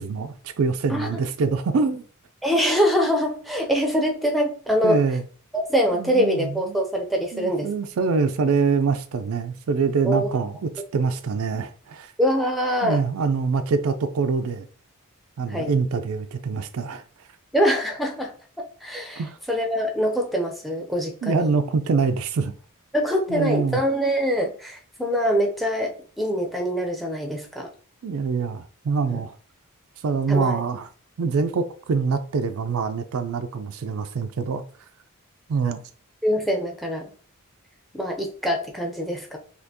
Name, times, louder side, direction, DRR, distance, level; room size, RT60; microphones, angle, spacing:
voice 1, 0.0-2.1 4.8-5.2 5.9-6.8 7.3-12.1 12.8-14.7 15.4-17.0 19.2-19.4 21.2-22.5 23.3-23.8 28.0-29.3 30.0-30.9 31.2-34.6 35.5-35.8, right 4 dB, 65° right, 0.4 m, -25 dB
voice 2, 2.4-5.0 5.5-7.7 10.0-10.3 12.2-13.0 15.5-15.7 17.5-18.3 18.6-19.2 19.5-21.5 22.9-27.7 29.1-29.2 30.3-30.6 36.2-37.1 37.9-39.4, equal, ahead, 0.6 m, -24 dB
4.2 x 2.9 x 2.9 m
head